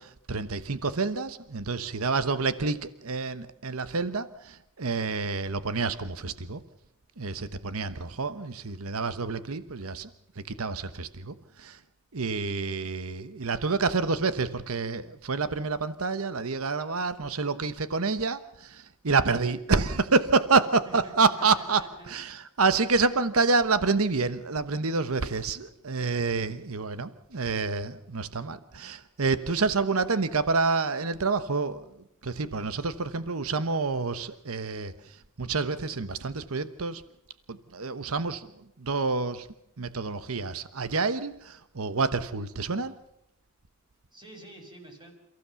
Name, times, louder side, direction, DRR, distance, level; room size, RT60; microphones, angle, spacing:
voice 1, 0.0-6.6 7.2-10.1 10.4-11.8 12.1-31.8 32.2-37.0 37.5-38.5 38.8-39.5 39.8-42.9, right 4 dB, 85° right, 13 dB, 1.0 m, -28 dB
voice 2, 20.8-22.1 44.1-45.1, right 1 dB, 20° right, 3 dB, 5.9 m, -48 dB
29.0 x 15.5 x 7.0 m, 0.83 s
head